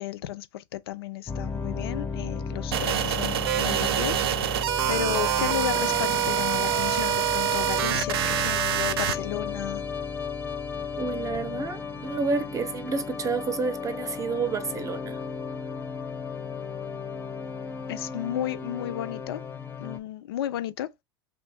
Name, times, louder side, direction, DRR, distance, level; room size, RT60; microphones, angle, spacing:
voice 1, 0.0-9.8 17.9-19.4 19.8-21.0, left 12 dB, 75° left, 0.4 m, -33 dB
sound 1, 1.3-20.0, left 5 dB, 15° left, 0.6 m, -34 dB
sound 2, 2.7-9.2, right 11 dB, 80° right, 0.4 m, -26 dB
voice 2, 11.0-15.2, right 4 dB, 25° right, 0.6 m, -29 dB
2.7 x 2.6 x 3.4 m
hypercardioid pair, 90°, 13 cm